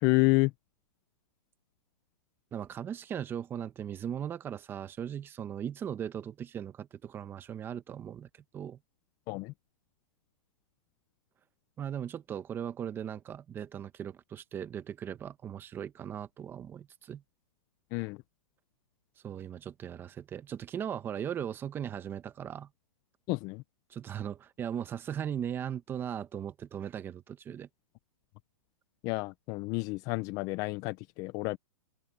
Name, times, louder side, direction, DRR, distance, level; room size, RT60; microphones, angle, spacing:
voice 1, 0.0-0.5 9.3-9.5 17.9-18.2 23.3-23.6 29.0-31.6, left 23 dB, 20° left, 0.4 m, -29 dB
voice 2, 2.5-8.8 11.8-17.2 19.2-22.7 23.9-27.7, right 9 dB, 15° right, 0.9 m, -38 dB
hypercardioid pair, 160°, 16 cm